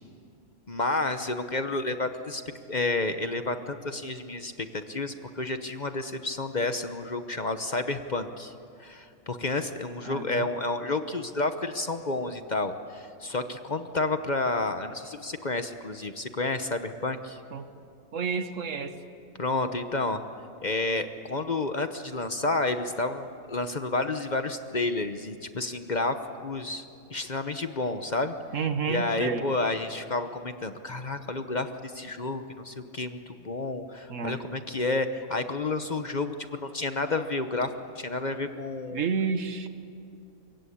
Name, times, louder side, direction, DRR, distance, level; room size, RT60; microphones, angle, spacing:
voice 1, 0.7-2.4 2.7-8.5 8.8-17.4 19.4-20.2 20.6-26.2 26.4-26.8 27.1-28.3 28.8-39.0, left 2 dB, 35° left, 8 dB, 1.0 m, -30 dB
voice 2, 10.0-10.5 17.5-17.7 18.1-19.0 28.5-29.4 34.1-34.4 38.9-39.7, right 5 dB, 70° right, 9 dB, 1.6 m, -30 dB
25.5 x 22.5 x 8.5 m, 2.5 s
omnidirectional pair, 1.4 m